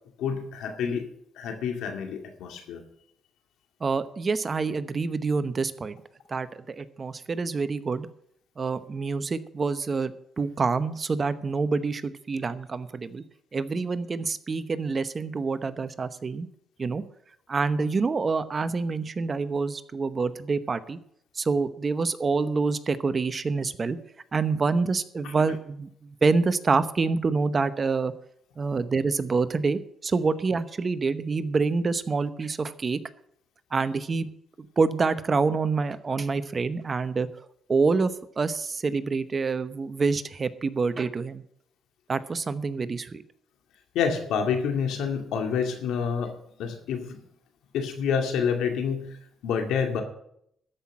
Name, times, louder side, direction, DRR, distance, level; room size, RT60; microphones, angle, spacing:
voice 1, 0.2-1.1 1.4-2.8 25.2-25.3 43.9-46.3 46.6-47.2 47.7-50.0, left 6 dB, 85° left, 5 dB, 2.2 m, -28 dB
voice 2, 3.8-6.0 6.3-8.1 8.6-13.2 13.5-16.5 16.8-17.0 17.5-21.0 21.4-24.0 24.3-28.1 28.6-33.0 33.7-34.3 34.6-37.3 37.7-38.1 38.4-41.4 42.1-43.2, right 4 dB, 35° right, 13 dB, 0.9 m, -27 dB
13.5 x 5.9 x 8.7 m, 0.70 s
cardioid pair, 90°, 0 cm